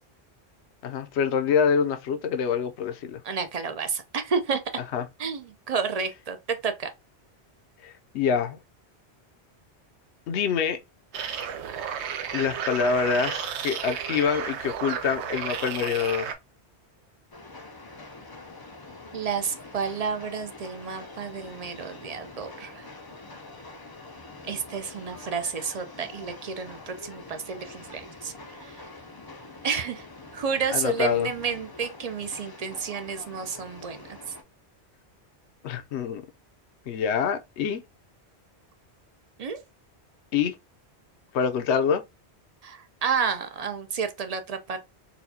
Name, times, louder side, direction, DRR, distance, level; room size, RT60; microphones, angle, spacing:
voice 1, 0.8-3.2 4.9-5.1 7.8-8.6 10.3-10.8 12.3-16.3 30.7-31.3 35.6-36.2 36.9-37.8 40.3-40.6 41.3-42.0, left 6 dB, 75° left, 0.9 m, -26 dB
voice 2, 3.2-4.6 5.2-6.9 19.1-22.9 24.5-28.3 28.6-28.8 29.6-30.1 30.3-34.0 39.4-39.6 42.6-44.8, right 6 dB, 50° right, 0.5 m, -30 dB
sound 1, 11.1-16.4, right 8 dB, 80° right, 0.9 m, -33 dB
Train, 17.3-34.4, left 2 dB, 35° left, 0.4 m, -45 dB
4.1 x 2.3 x 2.7 m
omnidirectional pair, 1.1 m